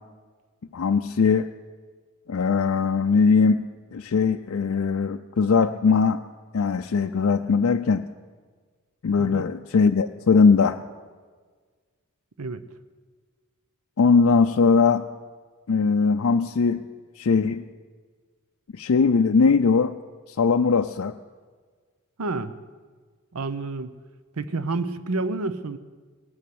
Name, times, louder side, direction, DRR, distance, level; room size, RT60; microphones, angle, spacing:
voice 1, 0.7-1.5 2.3-3.6 3.9-6.2 6.5-8.1 9.0-10.8 14.0-15.1 15.7-16.9 17.2-17.6 18.7-20.0 20.4-21.2, left 5 dB, 70° left, 5 dB, 0.4 m, -20 dB
voice 2, 22.2-22.5 23.3-24.0 24.4-25.8, right 3 dB, 85° right, 13 dB, 0.7 m, -29 dB
18.0 x 8.6 x 7.7 m, 1.5 s
head